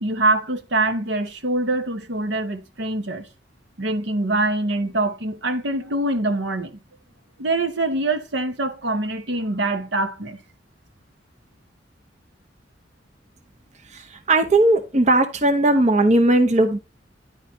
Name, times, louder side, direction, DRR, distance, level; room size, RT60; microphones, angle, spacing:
voice 1, 0.0-3.3 3.8-6.8 7.4-10.4, right 2 dB, 70° right, 1.1 m, -24 dB
voice 2, 13.9-16.8, right 2 dB, 40° right, 0.9 m, -18 dB
10.0 x 4.9 x 4.3 m
head